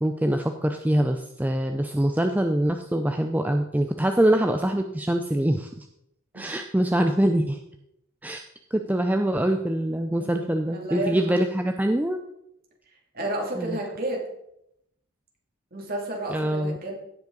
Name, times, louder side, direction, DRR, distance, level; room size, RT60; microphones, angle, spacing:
voice 1, 0.0-5.9 6.3-7.6 8.2-8.4 8.7-12.2 13.6-13.8 16.3-16.8, right 1 dB, 10° right, 5 dB, 0.4 m, -24 dB
voice 2, 10.2-11.5 13.1-14.3 15.7-16.9, right 1 dB, 45° right, -1 dB, 2.5 m, -32 dB
16.5 x 5.5 x 3.9 m, 0.79 s
head